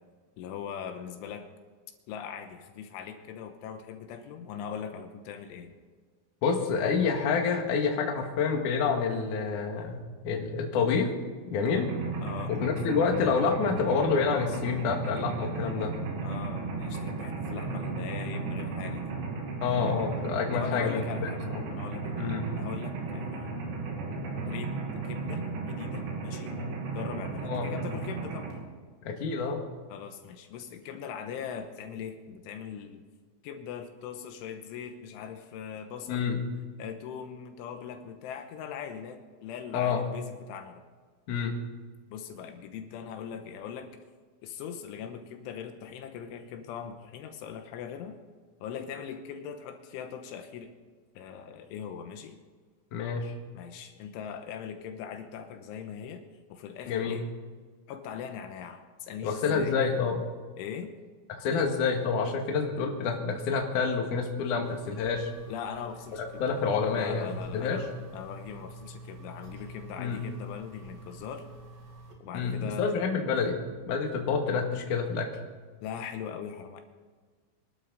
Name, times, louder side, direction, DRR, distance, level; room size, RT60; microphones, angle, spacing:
voice 1, 0.4-1.5 2.1-5.7 12.2-12.5 16.2-19.1 20.5-23.6 24.5-26.6 26.9-28.6 29.9-33.0 33.4-36.3 36.8-40.8 42.1-44.0 44.4-48.2 48.6-50.7 51.1-52.4 53.5-56.2 56.5-57.3 57.9-59.8 60.6-60.9 65.5-66.6 66.9-71.5 72.2-72.9 75.8-76.8, left 7 dB, 80° left, 6 dB, 3.4 m, -40 dB
voice 2, 6.4-11.1 11.5-11.9 12.5-16.0 19.6-21.6 22.2-22.5 27.4-27.7 29.1-29.6 36.1-36.4 39.7-40.0 41.3-41.5 52.9-53.3 56.9-57.2 59.2-60.2 61.3-65.3 66.1-67.8 70.0-70.2 72.3-75.3, left 5 dB, 55° left, 2 dB, 2.6 m, -28 dB
Mechanisms, 11.7-28.5, right 4 dB, 75° right, 5.0 m, -35 dB
sound 1, 64.6-72.1, right 2 dB, 55° right, 3.5 m, -47 dB
25.0 x 12.5 x 4.0 m, 1.5 s
omnidirectional pair, 5.6 m